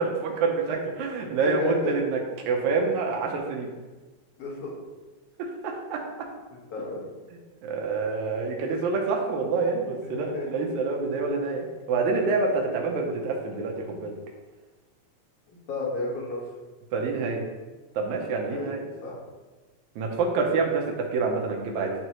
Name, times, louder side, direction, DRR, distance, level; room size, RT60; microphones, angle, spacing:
voice 1, 0.0-3.7 5.4-6.0 7.6-14.1 16.9-17.4 18.0-18.8 20.0-21.9, right 4 dB, 75° right, 1 dB, 2.2 m, -27 dB
voice 2, 1.4-2.0 4.4-4.7 6.7-7.0 10.0-10.5 15.5-16.4 18.5-18.7 19.0-19.2, left 3 dB, 55° left, -6 dB, 2.5 m, -31 dB
9.4 x 3.3 x 3.0 m, 1.2 s
omnidirectional pair, 3.4 m